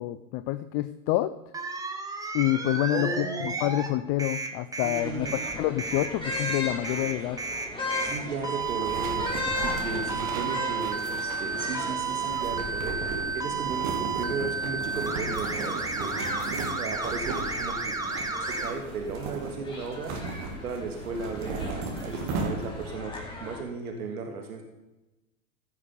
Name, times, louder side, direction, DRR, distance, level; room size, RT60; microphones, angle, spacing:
voice 1, 0.0-1.4 2.3-7.4, left 16 dB, 35° left, 13 dB, 0.4 m, -28 dB
sound 1, 1.5-3.9 4.2-18.7, right 4 dB, 10° right, 1.3 m, -32 dB
voice 2, 2.9-3.6 4.8-5.3 8.0-9.3 9.6-13.0 13.3-16.3 16.8-18.0 18.4-20.2 20.6-24.6, right 4 dB, 85° right, 3 dB, 1.8 m, -35 dB
sound 2, 4.9-23.6, left 2 dB, 10° left, 2.6 m, -38 dB
sound 3, 8.6-22.9, right 3 dB, 45° right, 2.7 m, -37 dB
15.0 x 6.7 x 5.3 m, 1.0 s
hypercardioid pair, 105°, 43 cm